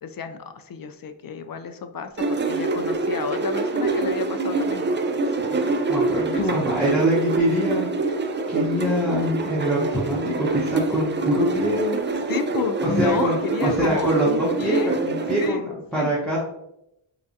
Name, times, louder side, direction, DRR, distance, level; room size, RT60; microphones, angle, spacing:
voice 1, 0.0-5.0 6.3-6.4 7.0-7.3 12.3-14.9 15.4-15.6 15.9-16.1, left 6 dB, 45° left, 8 dB, 0.4 m, -31 dB
sound 1, 2.2-15.5, right 3 dB, 25° right, 0.3 m, -25 dB
voice 2, 5.6-8.2 8.5-12.0 12.8-13.4 13.6-16.4, equal, ahead, -7 dB, 1.0 m, -24 dB
4.2 x 2.4 x 2.7 m, 0.83 s
cardioid pair, 45°, 49 cm